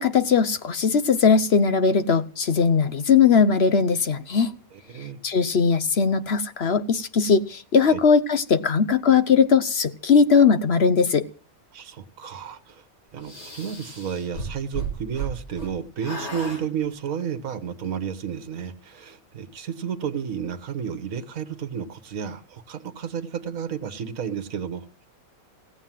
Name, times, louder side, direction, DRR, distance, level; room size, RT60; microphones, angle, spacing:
voice 1, 0.0-4.5 5.2-11.3, left 5 dB, 50° left, 1.0 m, -19 dB
voice 2, 4.7-5.2 7.9-8.0 11.7-12.8 13.1-24.9, right 7 dB, 70° right, 1.6 m, -32 dB
sound 1, 13.2-15.7 16.0-16.6, right 4 dB, 85° left, 5.9 m, -34 dB
16.5 x 8.3 x 7.5 m
omnidirectional pair, 1.5 m